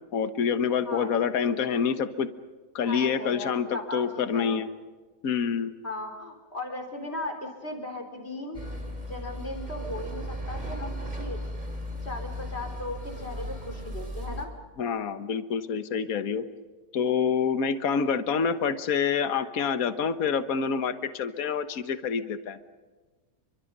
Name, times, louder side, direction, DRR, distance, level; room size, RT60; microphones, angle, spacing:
voice 1, 0.1-2.3 2.7-4.7 5.2-5.7 14.8-16.4 16.9-22.6, left 6 dB, 60° left, 10 dB, 1.6 m, -27 dB
voice 2, 0.8-1.2 1.5-1.7 2.8-4.6 5.8-8.6 9.0-11.4 12.0-14.5, left 2 dB, 35° left, 3 dB, 4.5 m, -37 dB
sound 1, 8.5-14.5, equal, 25° right, 3.0 m, -36 dB
29.5 x 25.0 x 5.4 m, 1.3 s
omnidirectional pair, 1.8 m